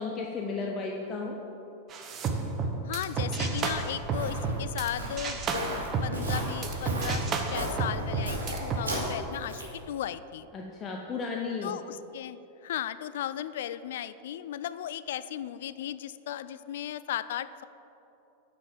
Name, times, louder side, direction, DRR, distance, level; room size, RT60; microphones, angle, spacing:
voice 1, 0.0-1.4 10.5-11.7, left 4 dB, 30° left, 0 dB, 0.9 m, -34 dB
sound 1, 1.9-4.9 5.2-8.8, right 4 dB, 30° right, 1.1 m, -31 dB
voice 2, 2.8-10.5 11.6-17.6, left 11 dB, 55° left, 15 dB, 0.3 m, -36 dB
Walk footsteps, 3.6-9.8, right 1 dB, 75° right, 2.5 m, -37 dB
9.3 x 6.9 x 7.5 m, 3.0 s
figure-of-eight pair, 90°, 0 cm